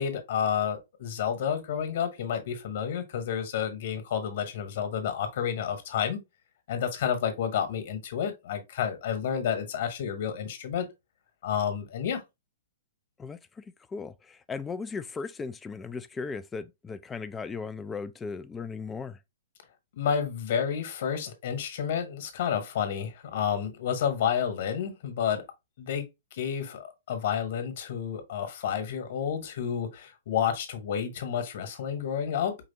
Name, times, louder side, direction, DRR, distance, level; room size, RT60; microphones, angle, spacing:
voice 1, 0.0-6.2 6.7-10.9 11.4-12.2 20.0-25.4 25.8-32.6, left 8 dB, 50° left, 1.2 m, -30 dB
voice 2, 13.2-19.2, left 4 dB, 15° left, 0.3 m, -37 dB
4.8 x 3.3 x 2.7 m
figure-of-eight pair, 110°, 0 cm